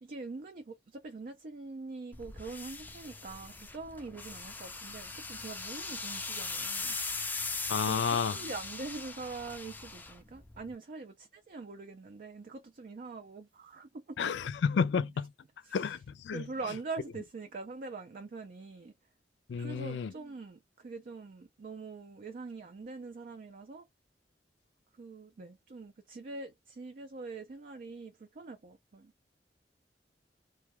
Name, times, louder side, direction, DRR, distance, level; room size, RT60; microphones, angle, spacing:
voice 1, 0.0-7.0 7.8-14.3 15.6-16.0 16.3-18.9 19.6-23.8 25.0-29.1, right 3 dB, 50° right, 0.4 m, -44 dB
sound 1, 2.1-10.7, left 3 dB, 10° left, 0.4 m, -40 dB
voice 2, 7.7-8.4 14.2-15.3 15.7-16.0 16.2-16.5 19.5-20.1, left 6 dB, 80° left, 0.4 m, -30 dB
2.2 x 2.2 x 2.9 m
head